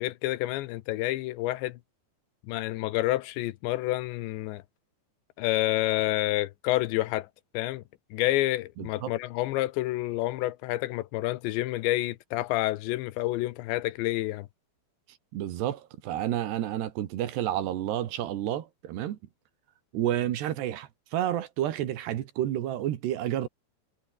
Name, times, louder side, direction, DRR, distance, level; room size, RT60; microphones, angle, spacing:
voice 1, 0.0-1.8 2.4-4.6 5.4-7.3 7.5-7.8 8.1-14.5, left 17 dB, 80° left, 3.0 m, -29 dB
voice 2, 8.8-9.1 15.3-19.2 19.9-23.5, right 12 dB, 70° right, 3.5 m, -30 dB
omnidirectional pair, 5.3 m